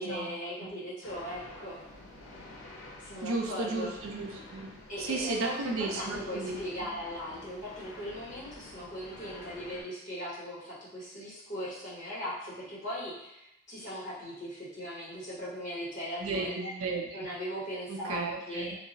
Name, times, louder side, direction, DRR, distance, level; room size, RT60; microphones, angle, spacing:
voice 1, 0.0-1.8 3.0-3.9 4.9-16.7 17.1-18.8, equal, 40° left, -8 dB, 1.0 m, -39 dB
sound 1, 1.0-9.8, left 2 dB, 65° left, 0.7 m, -49 dB
voice 2, 3.2-4.7 5.0-6.6 16.2-17.1 17.9-18.8, right 3 dB, 80° right, 1 dB, 0.5 m, -34 dB
2.3 x 2.0 x 3.8 m, 0.86 s
head